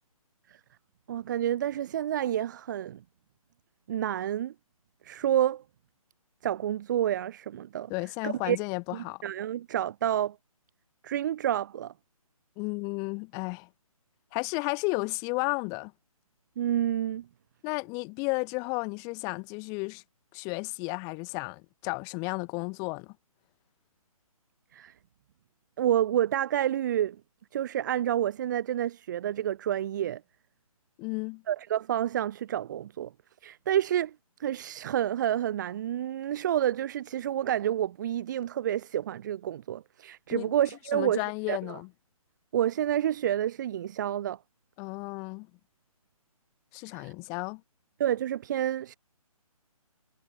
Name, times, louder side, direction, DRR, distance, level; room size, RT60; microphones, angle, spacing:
voice 1, 1.1-3.0 3.9-4.5 5.0-5.6 6.4-7.9 8.2-8.6 8.9-10.4 11.0-11.9 16.6-17.3 24.7-24.9 25.8-27.2 27.5-30.2 31.5-33.1 33.4-34.1 34.4-41.8 42.5-44.4 46.9-47.1 48.0-48.9, right 11 dB, 30° right, 0.8 m, -29 dB
voice 2, 7.9-9.2 12.6-13.7 14.3-15.9 17.6-20.0 20.3-23.1 31.0-31.4 40.3-40.5 40.9-41.9 44.8-45.5 46.7-47.6, left 32 dB, 15° left, 1.4 m, -33 dB
hypercardioid pair, 155°, 19 cm